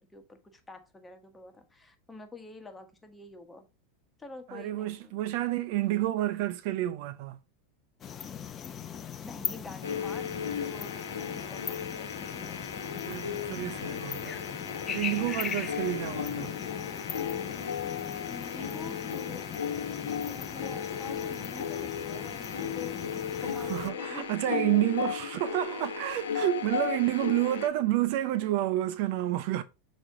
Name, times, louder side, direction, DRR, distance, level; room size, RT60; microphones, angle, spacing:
voice 1, 0.0-3.7 4.2-5.2 9.2-11.8 18.3-19.4 20.0-24.3 26.7-27.0, left 3 dB, 10° left, 1.3 m, -47 dB
voice 2, 4.5-7.4 13.1-14.4 14.9-16.5 23.6-29.6, right 14 dB, 55° right, 0.5 m, -29 dB
sound 1, 8.0-23.9, left 8 dB, 30° left, 0.7 m, -40 dB
sound 2, 9.8-27.7, left 7 dB, 75° left, 0.9 m, -35 dB
6.4 x 4.2 x 3.6 m
figure-of-eight pair, 85°, 0 cm